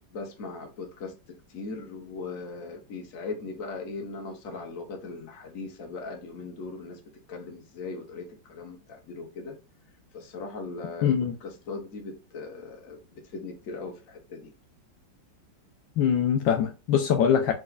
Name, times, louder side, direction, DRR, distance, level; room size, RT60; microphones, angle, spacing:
voice 1, 0.0-9.6 10.1-14.5, left 3 dB, 50° left, 1.4 m, -39 dB
voice 2, 11.0-11.3 16.0-17.5, left 8 dB, 75° left, 1.3 m, -23 dB
4.5 x 4.3 x 2.4 m
omnidirectional pair, 2.1 m